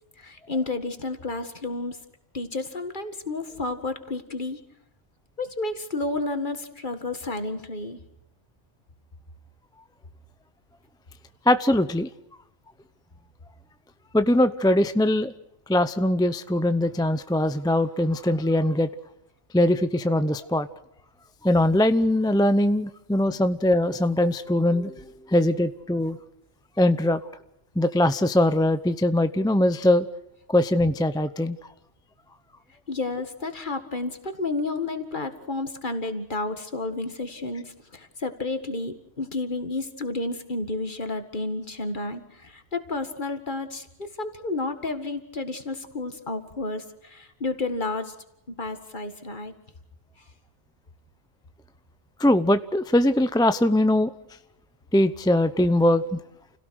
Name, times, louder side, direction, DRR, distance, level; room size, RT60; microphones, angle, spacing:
voice 1, 0.2-2.0 2.3-4.6 5.4-8.0 32.9-48.1 48.6-49.5, left 2 dB, 40° left, 8 dB, 2.1 m, -31 dB
voice 2, 11.5-12.1 14.1-15.3 15.7-18.9 19.5-20.7 21.4-26.2 26.8-27.2 27.8-30.1 30.5-31.6 52.2-54.1 54.9-56.2, left 1 dB, 5° left, 11 dB, 0.5 m, -21 dB
29.5 x 17.0 x 6.4 m, 0.85 s
omnidirectional pair, 1.3 m